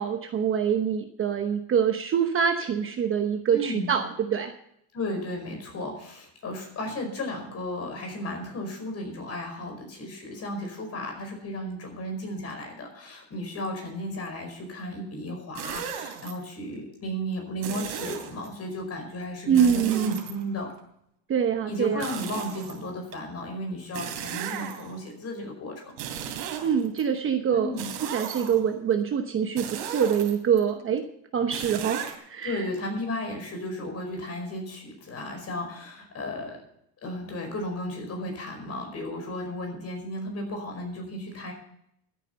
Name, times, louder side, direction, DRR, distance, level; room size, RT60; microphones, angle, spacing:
voice 1, 0.0-4.5 19.5-20.2 21.3-22.1 26.6-27.7 28.0-31.0 31.3-32.6, right 7 dB, 25° right, 6 dB, 1.0 m, -25 dB
voice 2, 3.5-4.0 4.9-20.7 21.7-25.9 27.5-27.9 32.4-36.6 37.0-41.5, left 1 dB, 30° left, 3 dB, 5.2 m, -34 dB
sound 1, 15.6-16.3 17.6-18.5 19.5-20.8 22.0-23.2 23.9-25.1 25.9-27.0 27.8-28.7 29.6-30.6 31.5-32.2, right 8 dB, 80° right, 3.1 m, -36 dB
14.0 x 9.3 x 5.6 m, 0.74 s
supercardioid pair, 135°, 49 cm